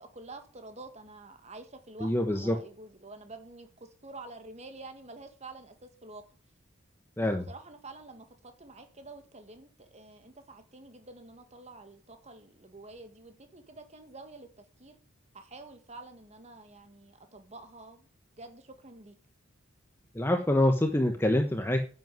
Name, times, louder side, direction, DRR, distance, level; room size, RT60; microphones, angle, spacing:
voice 1, 0.0-6.2 7.5-14.5 14.8-15.0 15.3-18.1 18.4-19.2, right 2 dB, 30° right, 1.9 m, -48 dB
voice 2, 2.0-2.6 7.2-7.5 20.1-21.9, left 1 dB, 10° left, 1.1 m, -26 dB
10.0 x 8.1 x 9.3 m
head